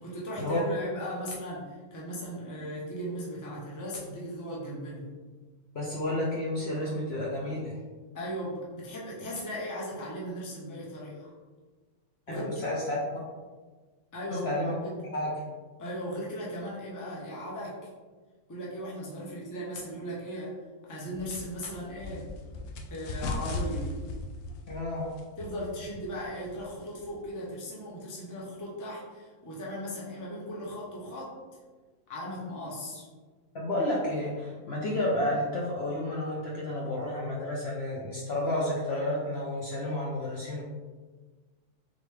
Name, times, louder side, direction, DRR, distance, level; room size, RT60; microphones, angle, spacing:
voice 1, 0.0-5.1 8.1-11.3 12.3-12.7 14.1-14.5 14.8-15.0 15.8-17.9 18.5-20.6 20.8-22.3 22.9-23.9 25.4-31.4 32.1-33.0, equal, 20° left, -4 dB, 0.6 m, -37 dB
voice 2, 5.7-7.8 12.3-13.2 14.3-14.7 15.1-15.5 24.7-25.1 33.5-40.6, left 1 dB, 55° left, -4 dB, 0.8 m, -31 dB
sound 1, 21.1-27.3, left 2 dB, 80° left, 1.0 m, -38 dB
3.9 x 3.1 x 3.3 m, 1.4 s
omnidirectional pair, 1.6 m